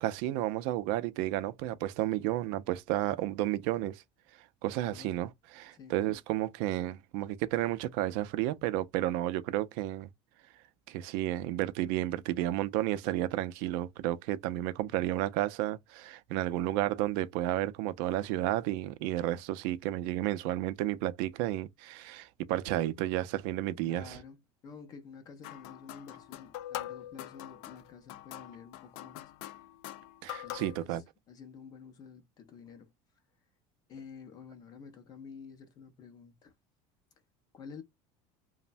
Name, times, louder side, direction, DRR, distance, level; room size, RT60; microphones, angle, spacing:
voice 1, 0.0-4.0 4.6-5.3 5.6-10.1 10.9-24.2 30.2-31.0, right 14 dB, 65° right, 0.4 m, -32 dB
voice 2, 4.8-5.2 5.7-6.0 23.8-29.2 30.4-32.9 33.9-36.5 37.5-37.8, left 6 dB, 30° left, 0.5 m, -50 dB
sound 1, 25.4-30.9, left 13 dB, 80° left, 0.4 m, -43 dB
3.1 x 2.0 x 2.5 m
cardioid pair, 180°, 14 cm